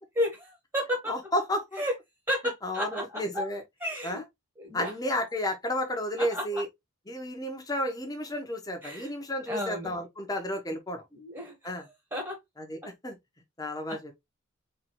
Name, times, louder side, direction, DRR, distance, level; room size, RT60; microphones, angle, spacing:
voice 1, 0.2-1.1 1.8-1.9 2.3-3.5 3.8-4.2 4.6-4.9 6.2-6.6 8.8-9.1 9.5-10.0 11.1-11.8 12.1-12.4 13.9-14.0, equal, 20° right, 1.4 m, -32 dB
voice 2, 1.1-1.8 2.6-3.6 4.0-4.2 4.7-6.7 7.1-11.0 11.6-11.8 12.6-12.8 13.0-13.2 13.6-14.1, left 1 dB, 20° left, 1.0 m, -32 dB
4.5 x 3.3 x 3.0 m
head